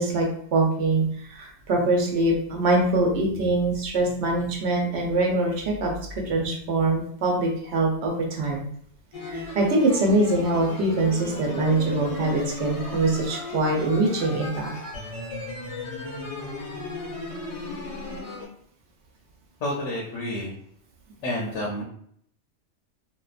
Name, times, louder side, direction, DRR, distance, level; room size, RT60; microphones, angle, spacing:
voice 1, 0.0-8.6 9.3-14.7, right 2 dB, 65° right, 0 dB, 0.9 m, -23 dB
sound 1, 9.1-18.5, left 3 dB, 40° left, 0.5 m, -35 dB
voice 2, 19.6-20.6 21.2-21.8, left 1 dB, 80° left, -4 dB, 1.0 m, -29 dB
2.8 x 2.2 x 2.3 m, 0.65 s
omnidirectional pair, 1.2 m